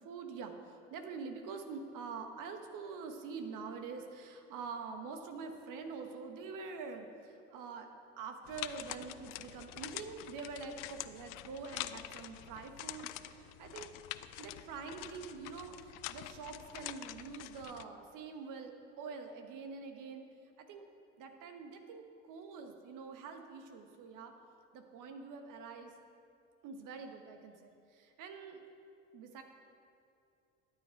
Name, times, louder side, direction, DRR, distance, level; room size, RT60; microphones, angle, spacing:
voice 1, 0.0-7.9 8.2-13.9 14.4-20.2 20.6-20.8 21.2-24.3 24.7-25.9 26.6-28.6 29.1-29.4, right 5 dB, 60° right, 5 dB, 1.4 m, -45 dB
sound 1, 8.4-17.8, left 15 dB, 65° left, 0.5 m, -46 dB
12.5 x 8.7 x 4.6 m, 2.6 s
hypercardioid pair, 65°, 36 cm